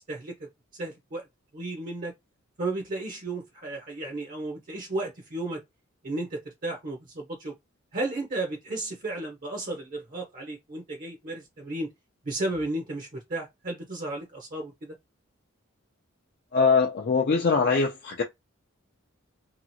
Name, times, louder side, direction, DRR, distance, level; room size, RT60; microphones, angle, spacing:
voice 1, 0.1-1.2 1.5-2.1 2.6-5.6 6.0-7.5 7.9-11.9 12.3-14.9, right 2 dB, 45° right, 0.7 m, -34 dB
voice 2, 16.5-18.2, left 4 dB, 45° left, 0.5 m, -22 dB
2.9 x 2.4 x 2.7 m
head